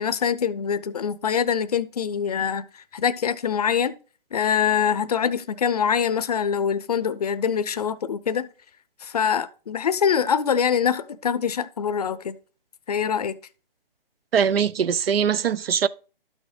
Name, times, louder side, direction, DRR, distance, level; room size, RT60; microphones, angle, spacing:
voice 1, 0.0-2.6 2.9-3.9 4.3-8.5 9.0-12.4 12.9-13.3, left 7 dB, 40° left, 0.5 m, -24 dB
voice 2, 14.3-15.9, right 7 dB, 80° right, 0.5 m, -21 dB
12.0 x 6.4 x 3.2 m
hypercardioid pair, 160°, 29 cm